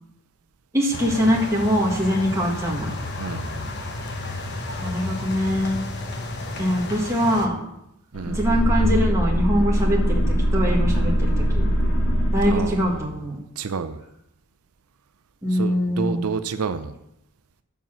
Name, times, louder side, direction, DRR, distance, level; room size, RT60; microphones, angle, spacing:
voice 1, 0.7-2.9 4.8-5.8 6.6-7.6 8.3-10.2 10.5-11.7 12.3-13.4 15.4-16.2, equal, 15° right, -3 dB, 1.7 m, -23 dB
sound 1, 0.9-7.5, left 2 dB, 50° left, 1.0 m, -32 dB
voice 2, 3.2-3.5 8.1-8.4 12.5-12.9 13.6-14.0 15.5-16.9, right 5 dB, 85° right, 10 dB, 0.5 m, -29 dB
sound 2, 8.1-13.0, equal, 85° left, 3.4 m, -22 dB
7.2 x 5.6 x 7.4 m, 0.84 s
head